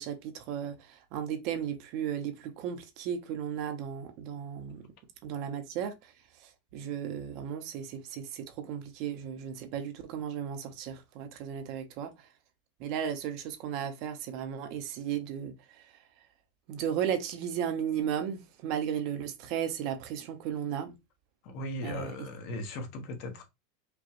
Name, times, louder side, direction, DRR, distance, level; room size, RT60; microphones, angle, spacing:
voice 1, 0.0-4.9 5.2-12.3 12.8-16.0 16.7-20.9 21.8-22.1, right 9 dB, 50° right, 0.8 m, -35 dB
voice 2, 21.4-23.4, left 1 dB, 50° left, 1.3 m, -38 dB
5.1 x 2.4 x 3.0 m
supercardioid pair, 150°, 0 cm